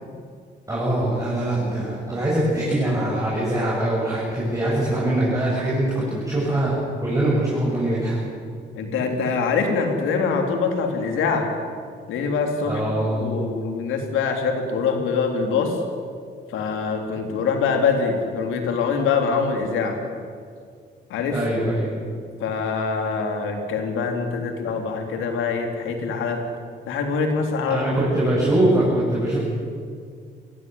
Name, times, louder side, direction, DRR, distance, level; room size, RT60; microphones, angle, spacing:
voice 1, 0.7-6.7 7.0-8.2 12.6-13.2 21.3-21.9 27.7-29.4, right 1 dB, 15° right, -7 dB, 7.7 m, -22 dB
voice 2, 8.8-11.5 12.1-15.8 16.5-20.0 21.1-21.4 22.4-26.4 26.9-27.8, left 5 dB, 90° left, 3 dB, 3.6 m, -24 dB
22.5 x 17.0 x 9.4 m, 2.2 s
cardioid pair, 90°, 20 cm